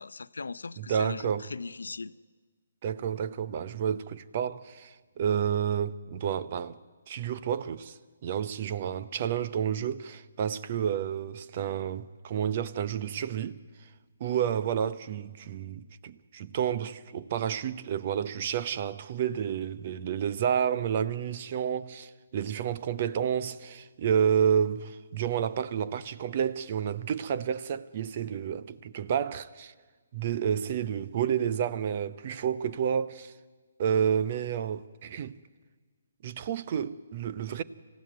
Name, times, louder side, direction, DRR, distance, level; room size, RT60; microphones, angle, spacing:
voice 1, 0.0-2.1, left 4 dB, 75° left, 0.6 m, -39 dB
voice 2, 0.8-1.5 2.8-6.8 7.1-13.6 14.2-29.7 30.1-33.3 33.8-35.4 36.2-37.6, right 8 dB, 40° right, 0.9 m, -30 dB
26.5 x 15.5 x 9.5 m
figure-of-eight pair, 140°, 0 cm